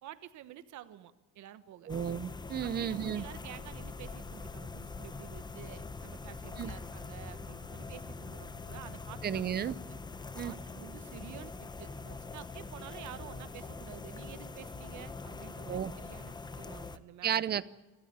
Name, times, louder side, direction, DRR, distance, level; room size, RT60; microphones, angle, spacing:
voice 1, 0.0-1.9 2.6-9.6 10.4-17.5, right 12 dB, 60° right, 12 dB, 1.4 m, -50 dB
sound 1, 1.9-17.0, left 3 dB, 15° left, 0.8 m, -43 dB
voice 2, 1.9-3.2 6.6-6.7 9.2-9.8 10.3-10.5 15.7-15.9 17.2-17.7, right 9 dB, 30° right, 18 dB, 0.7 m, -33 dB
29.5 x 13.5 x 8.7 m, 1.2 s
cardioid pair, 170°, 34 cm